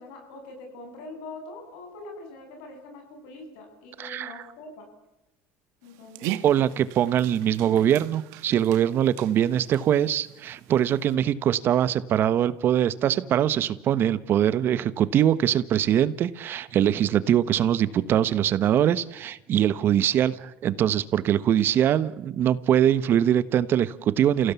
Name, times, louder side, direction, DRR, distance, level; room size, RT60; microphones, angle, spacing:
voice 1, 0.0-4.9 5.8-6.4 8.8-8.9 9.3-10.0, left 2 dB, 80° left, 4 dB, 7.6 m, -44 dB
voice 2, 4.0-4.3 6.4-24.5, right 10 dB, 45° right, 16 dB, 1.2 m, -22 dB
Dog, 5.8-11.2, right 14 dB, 75° right, 1.4 m, -40 dB
29.5 x 16.5 x 8.4 m, 0.94 s
cardioid pair, 120°, 5 cm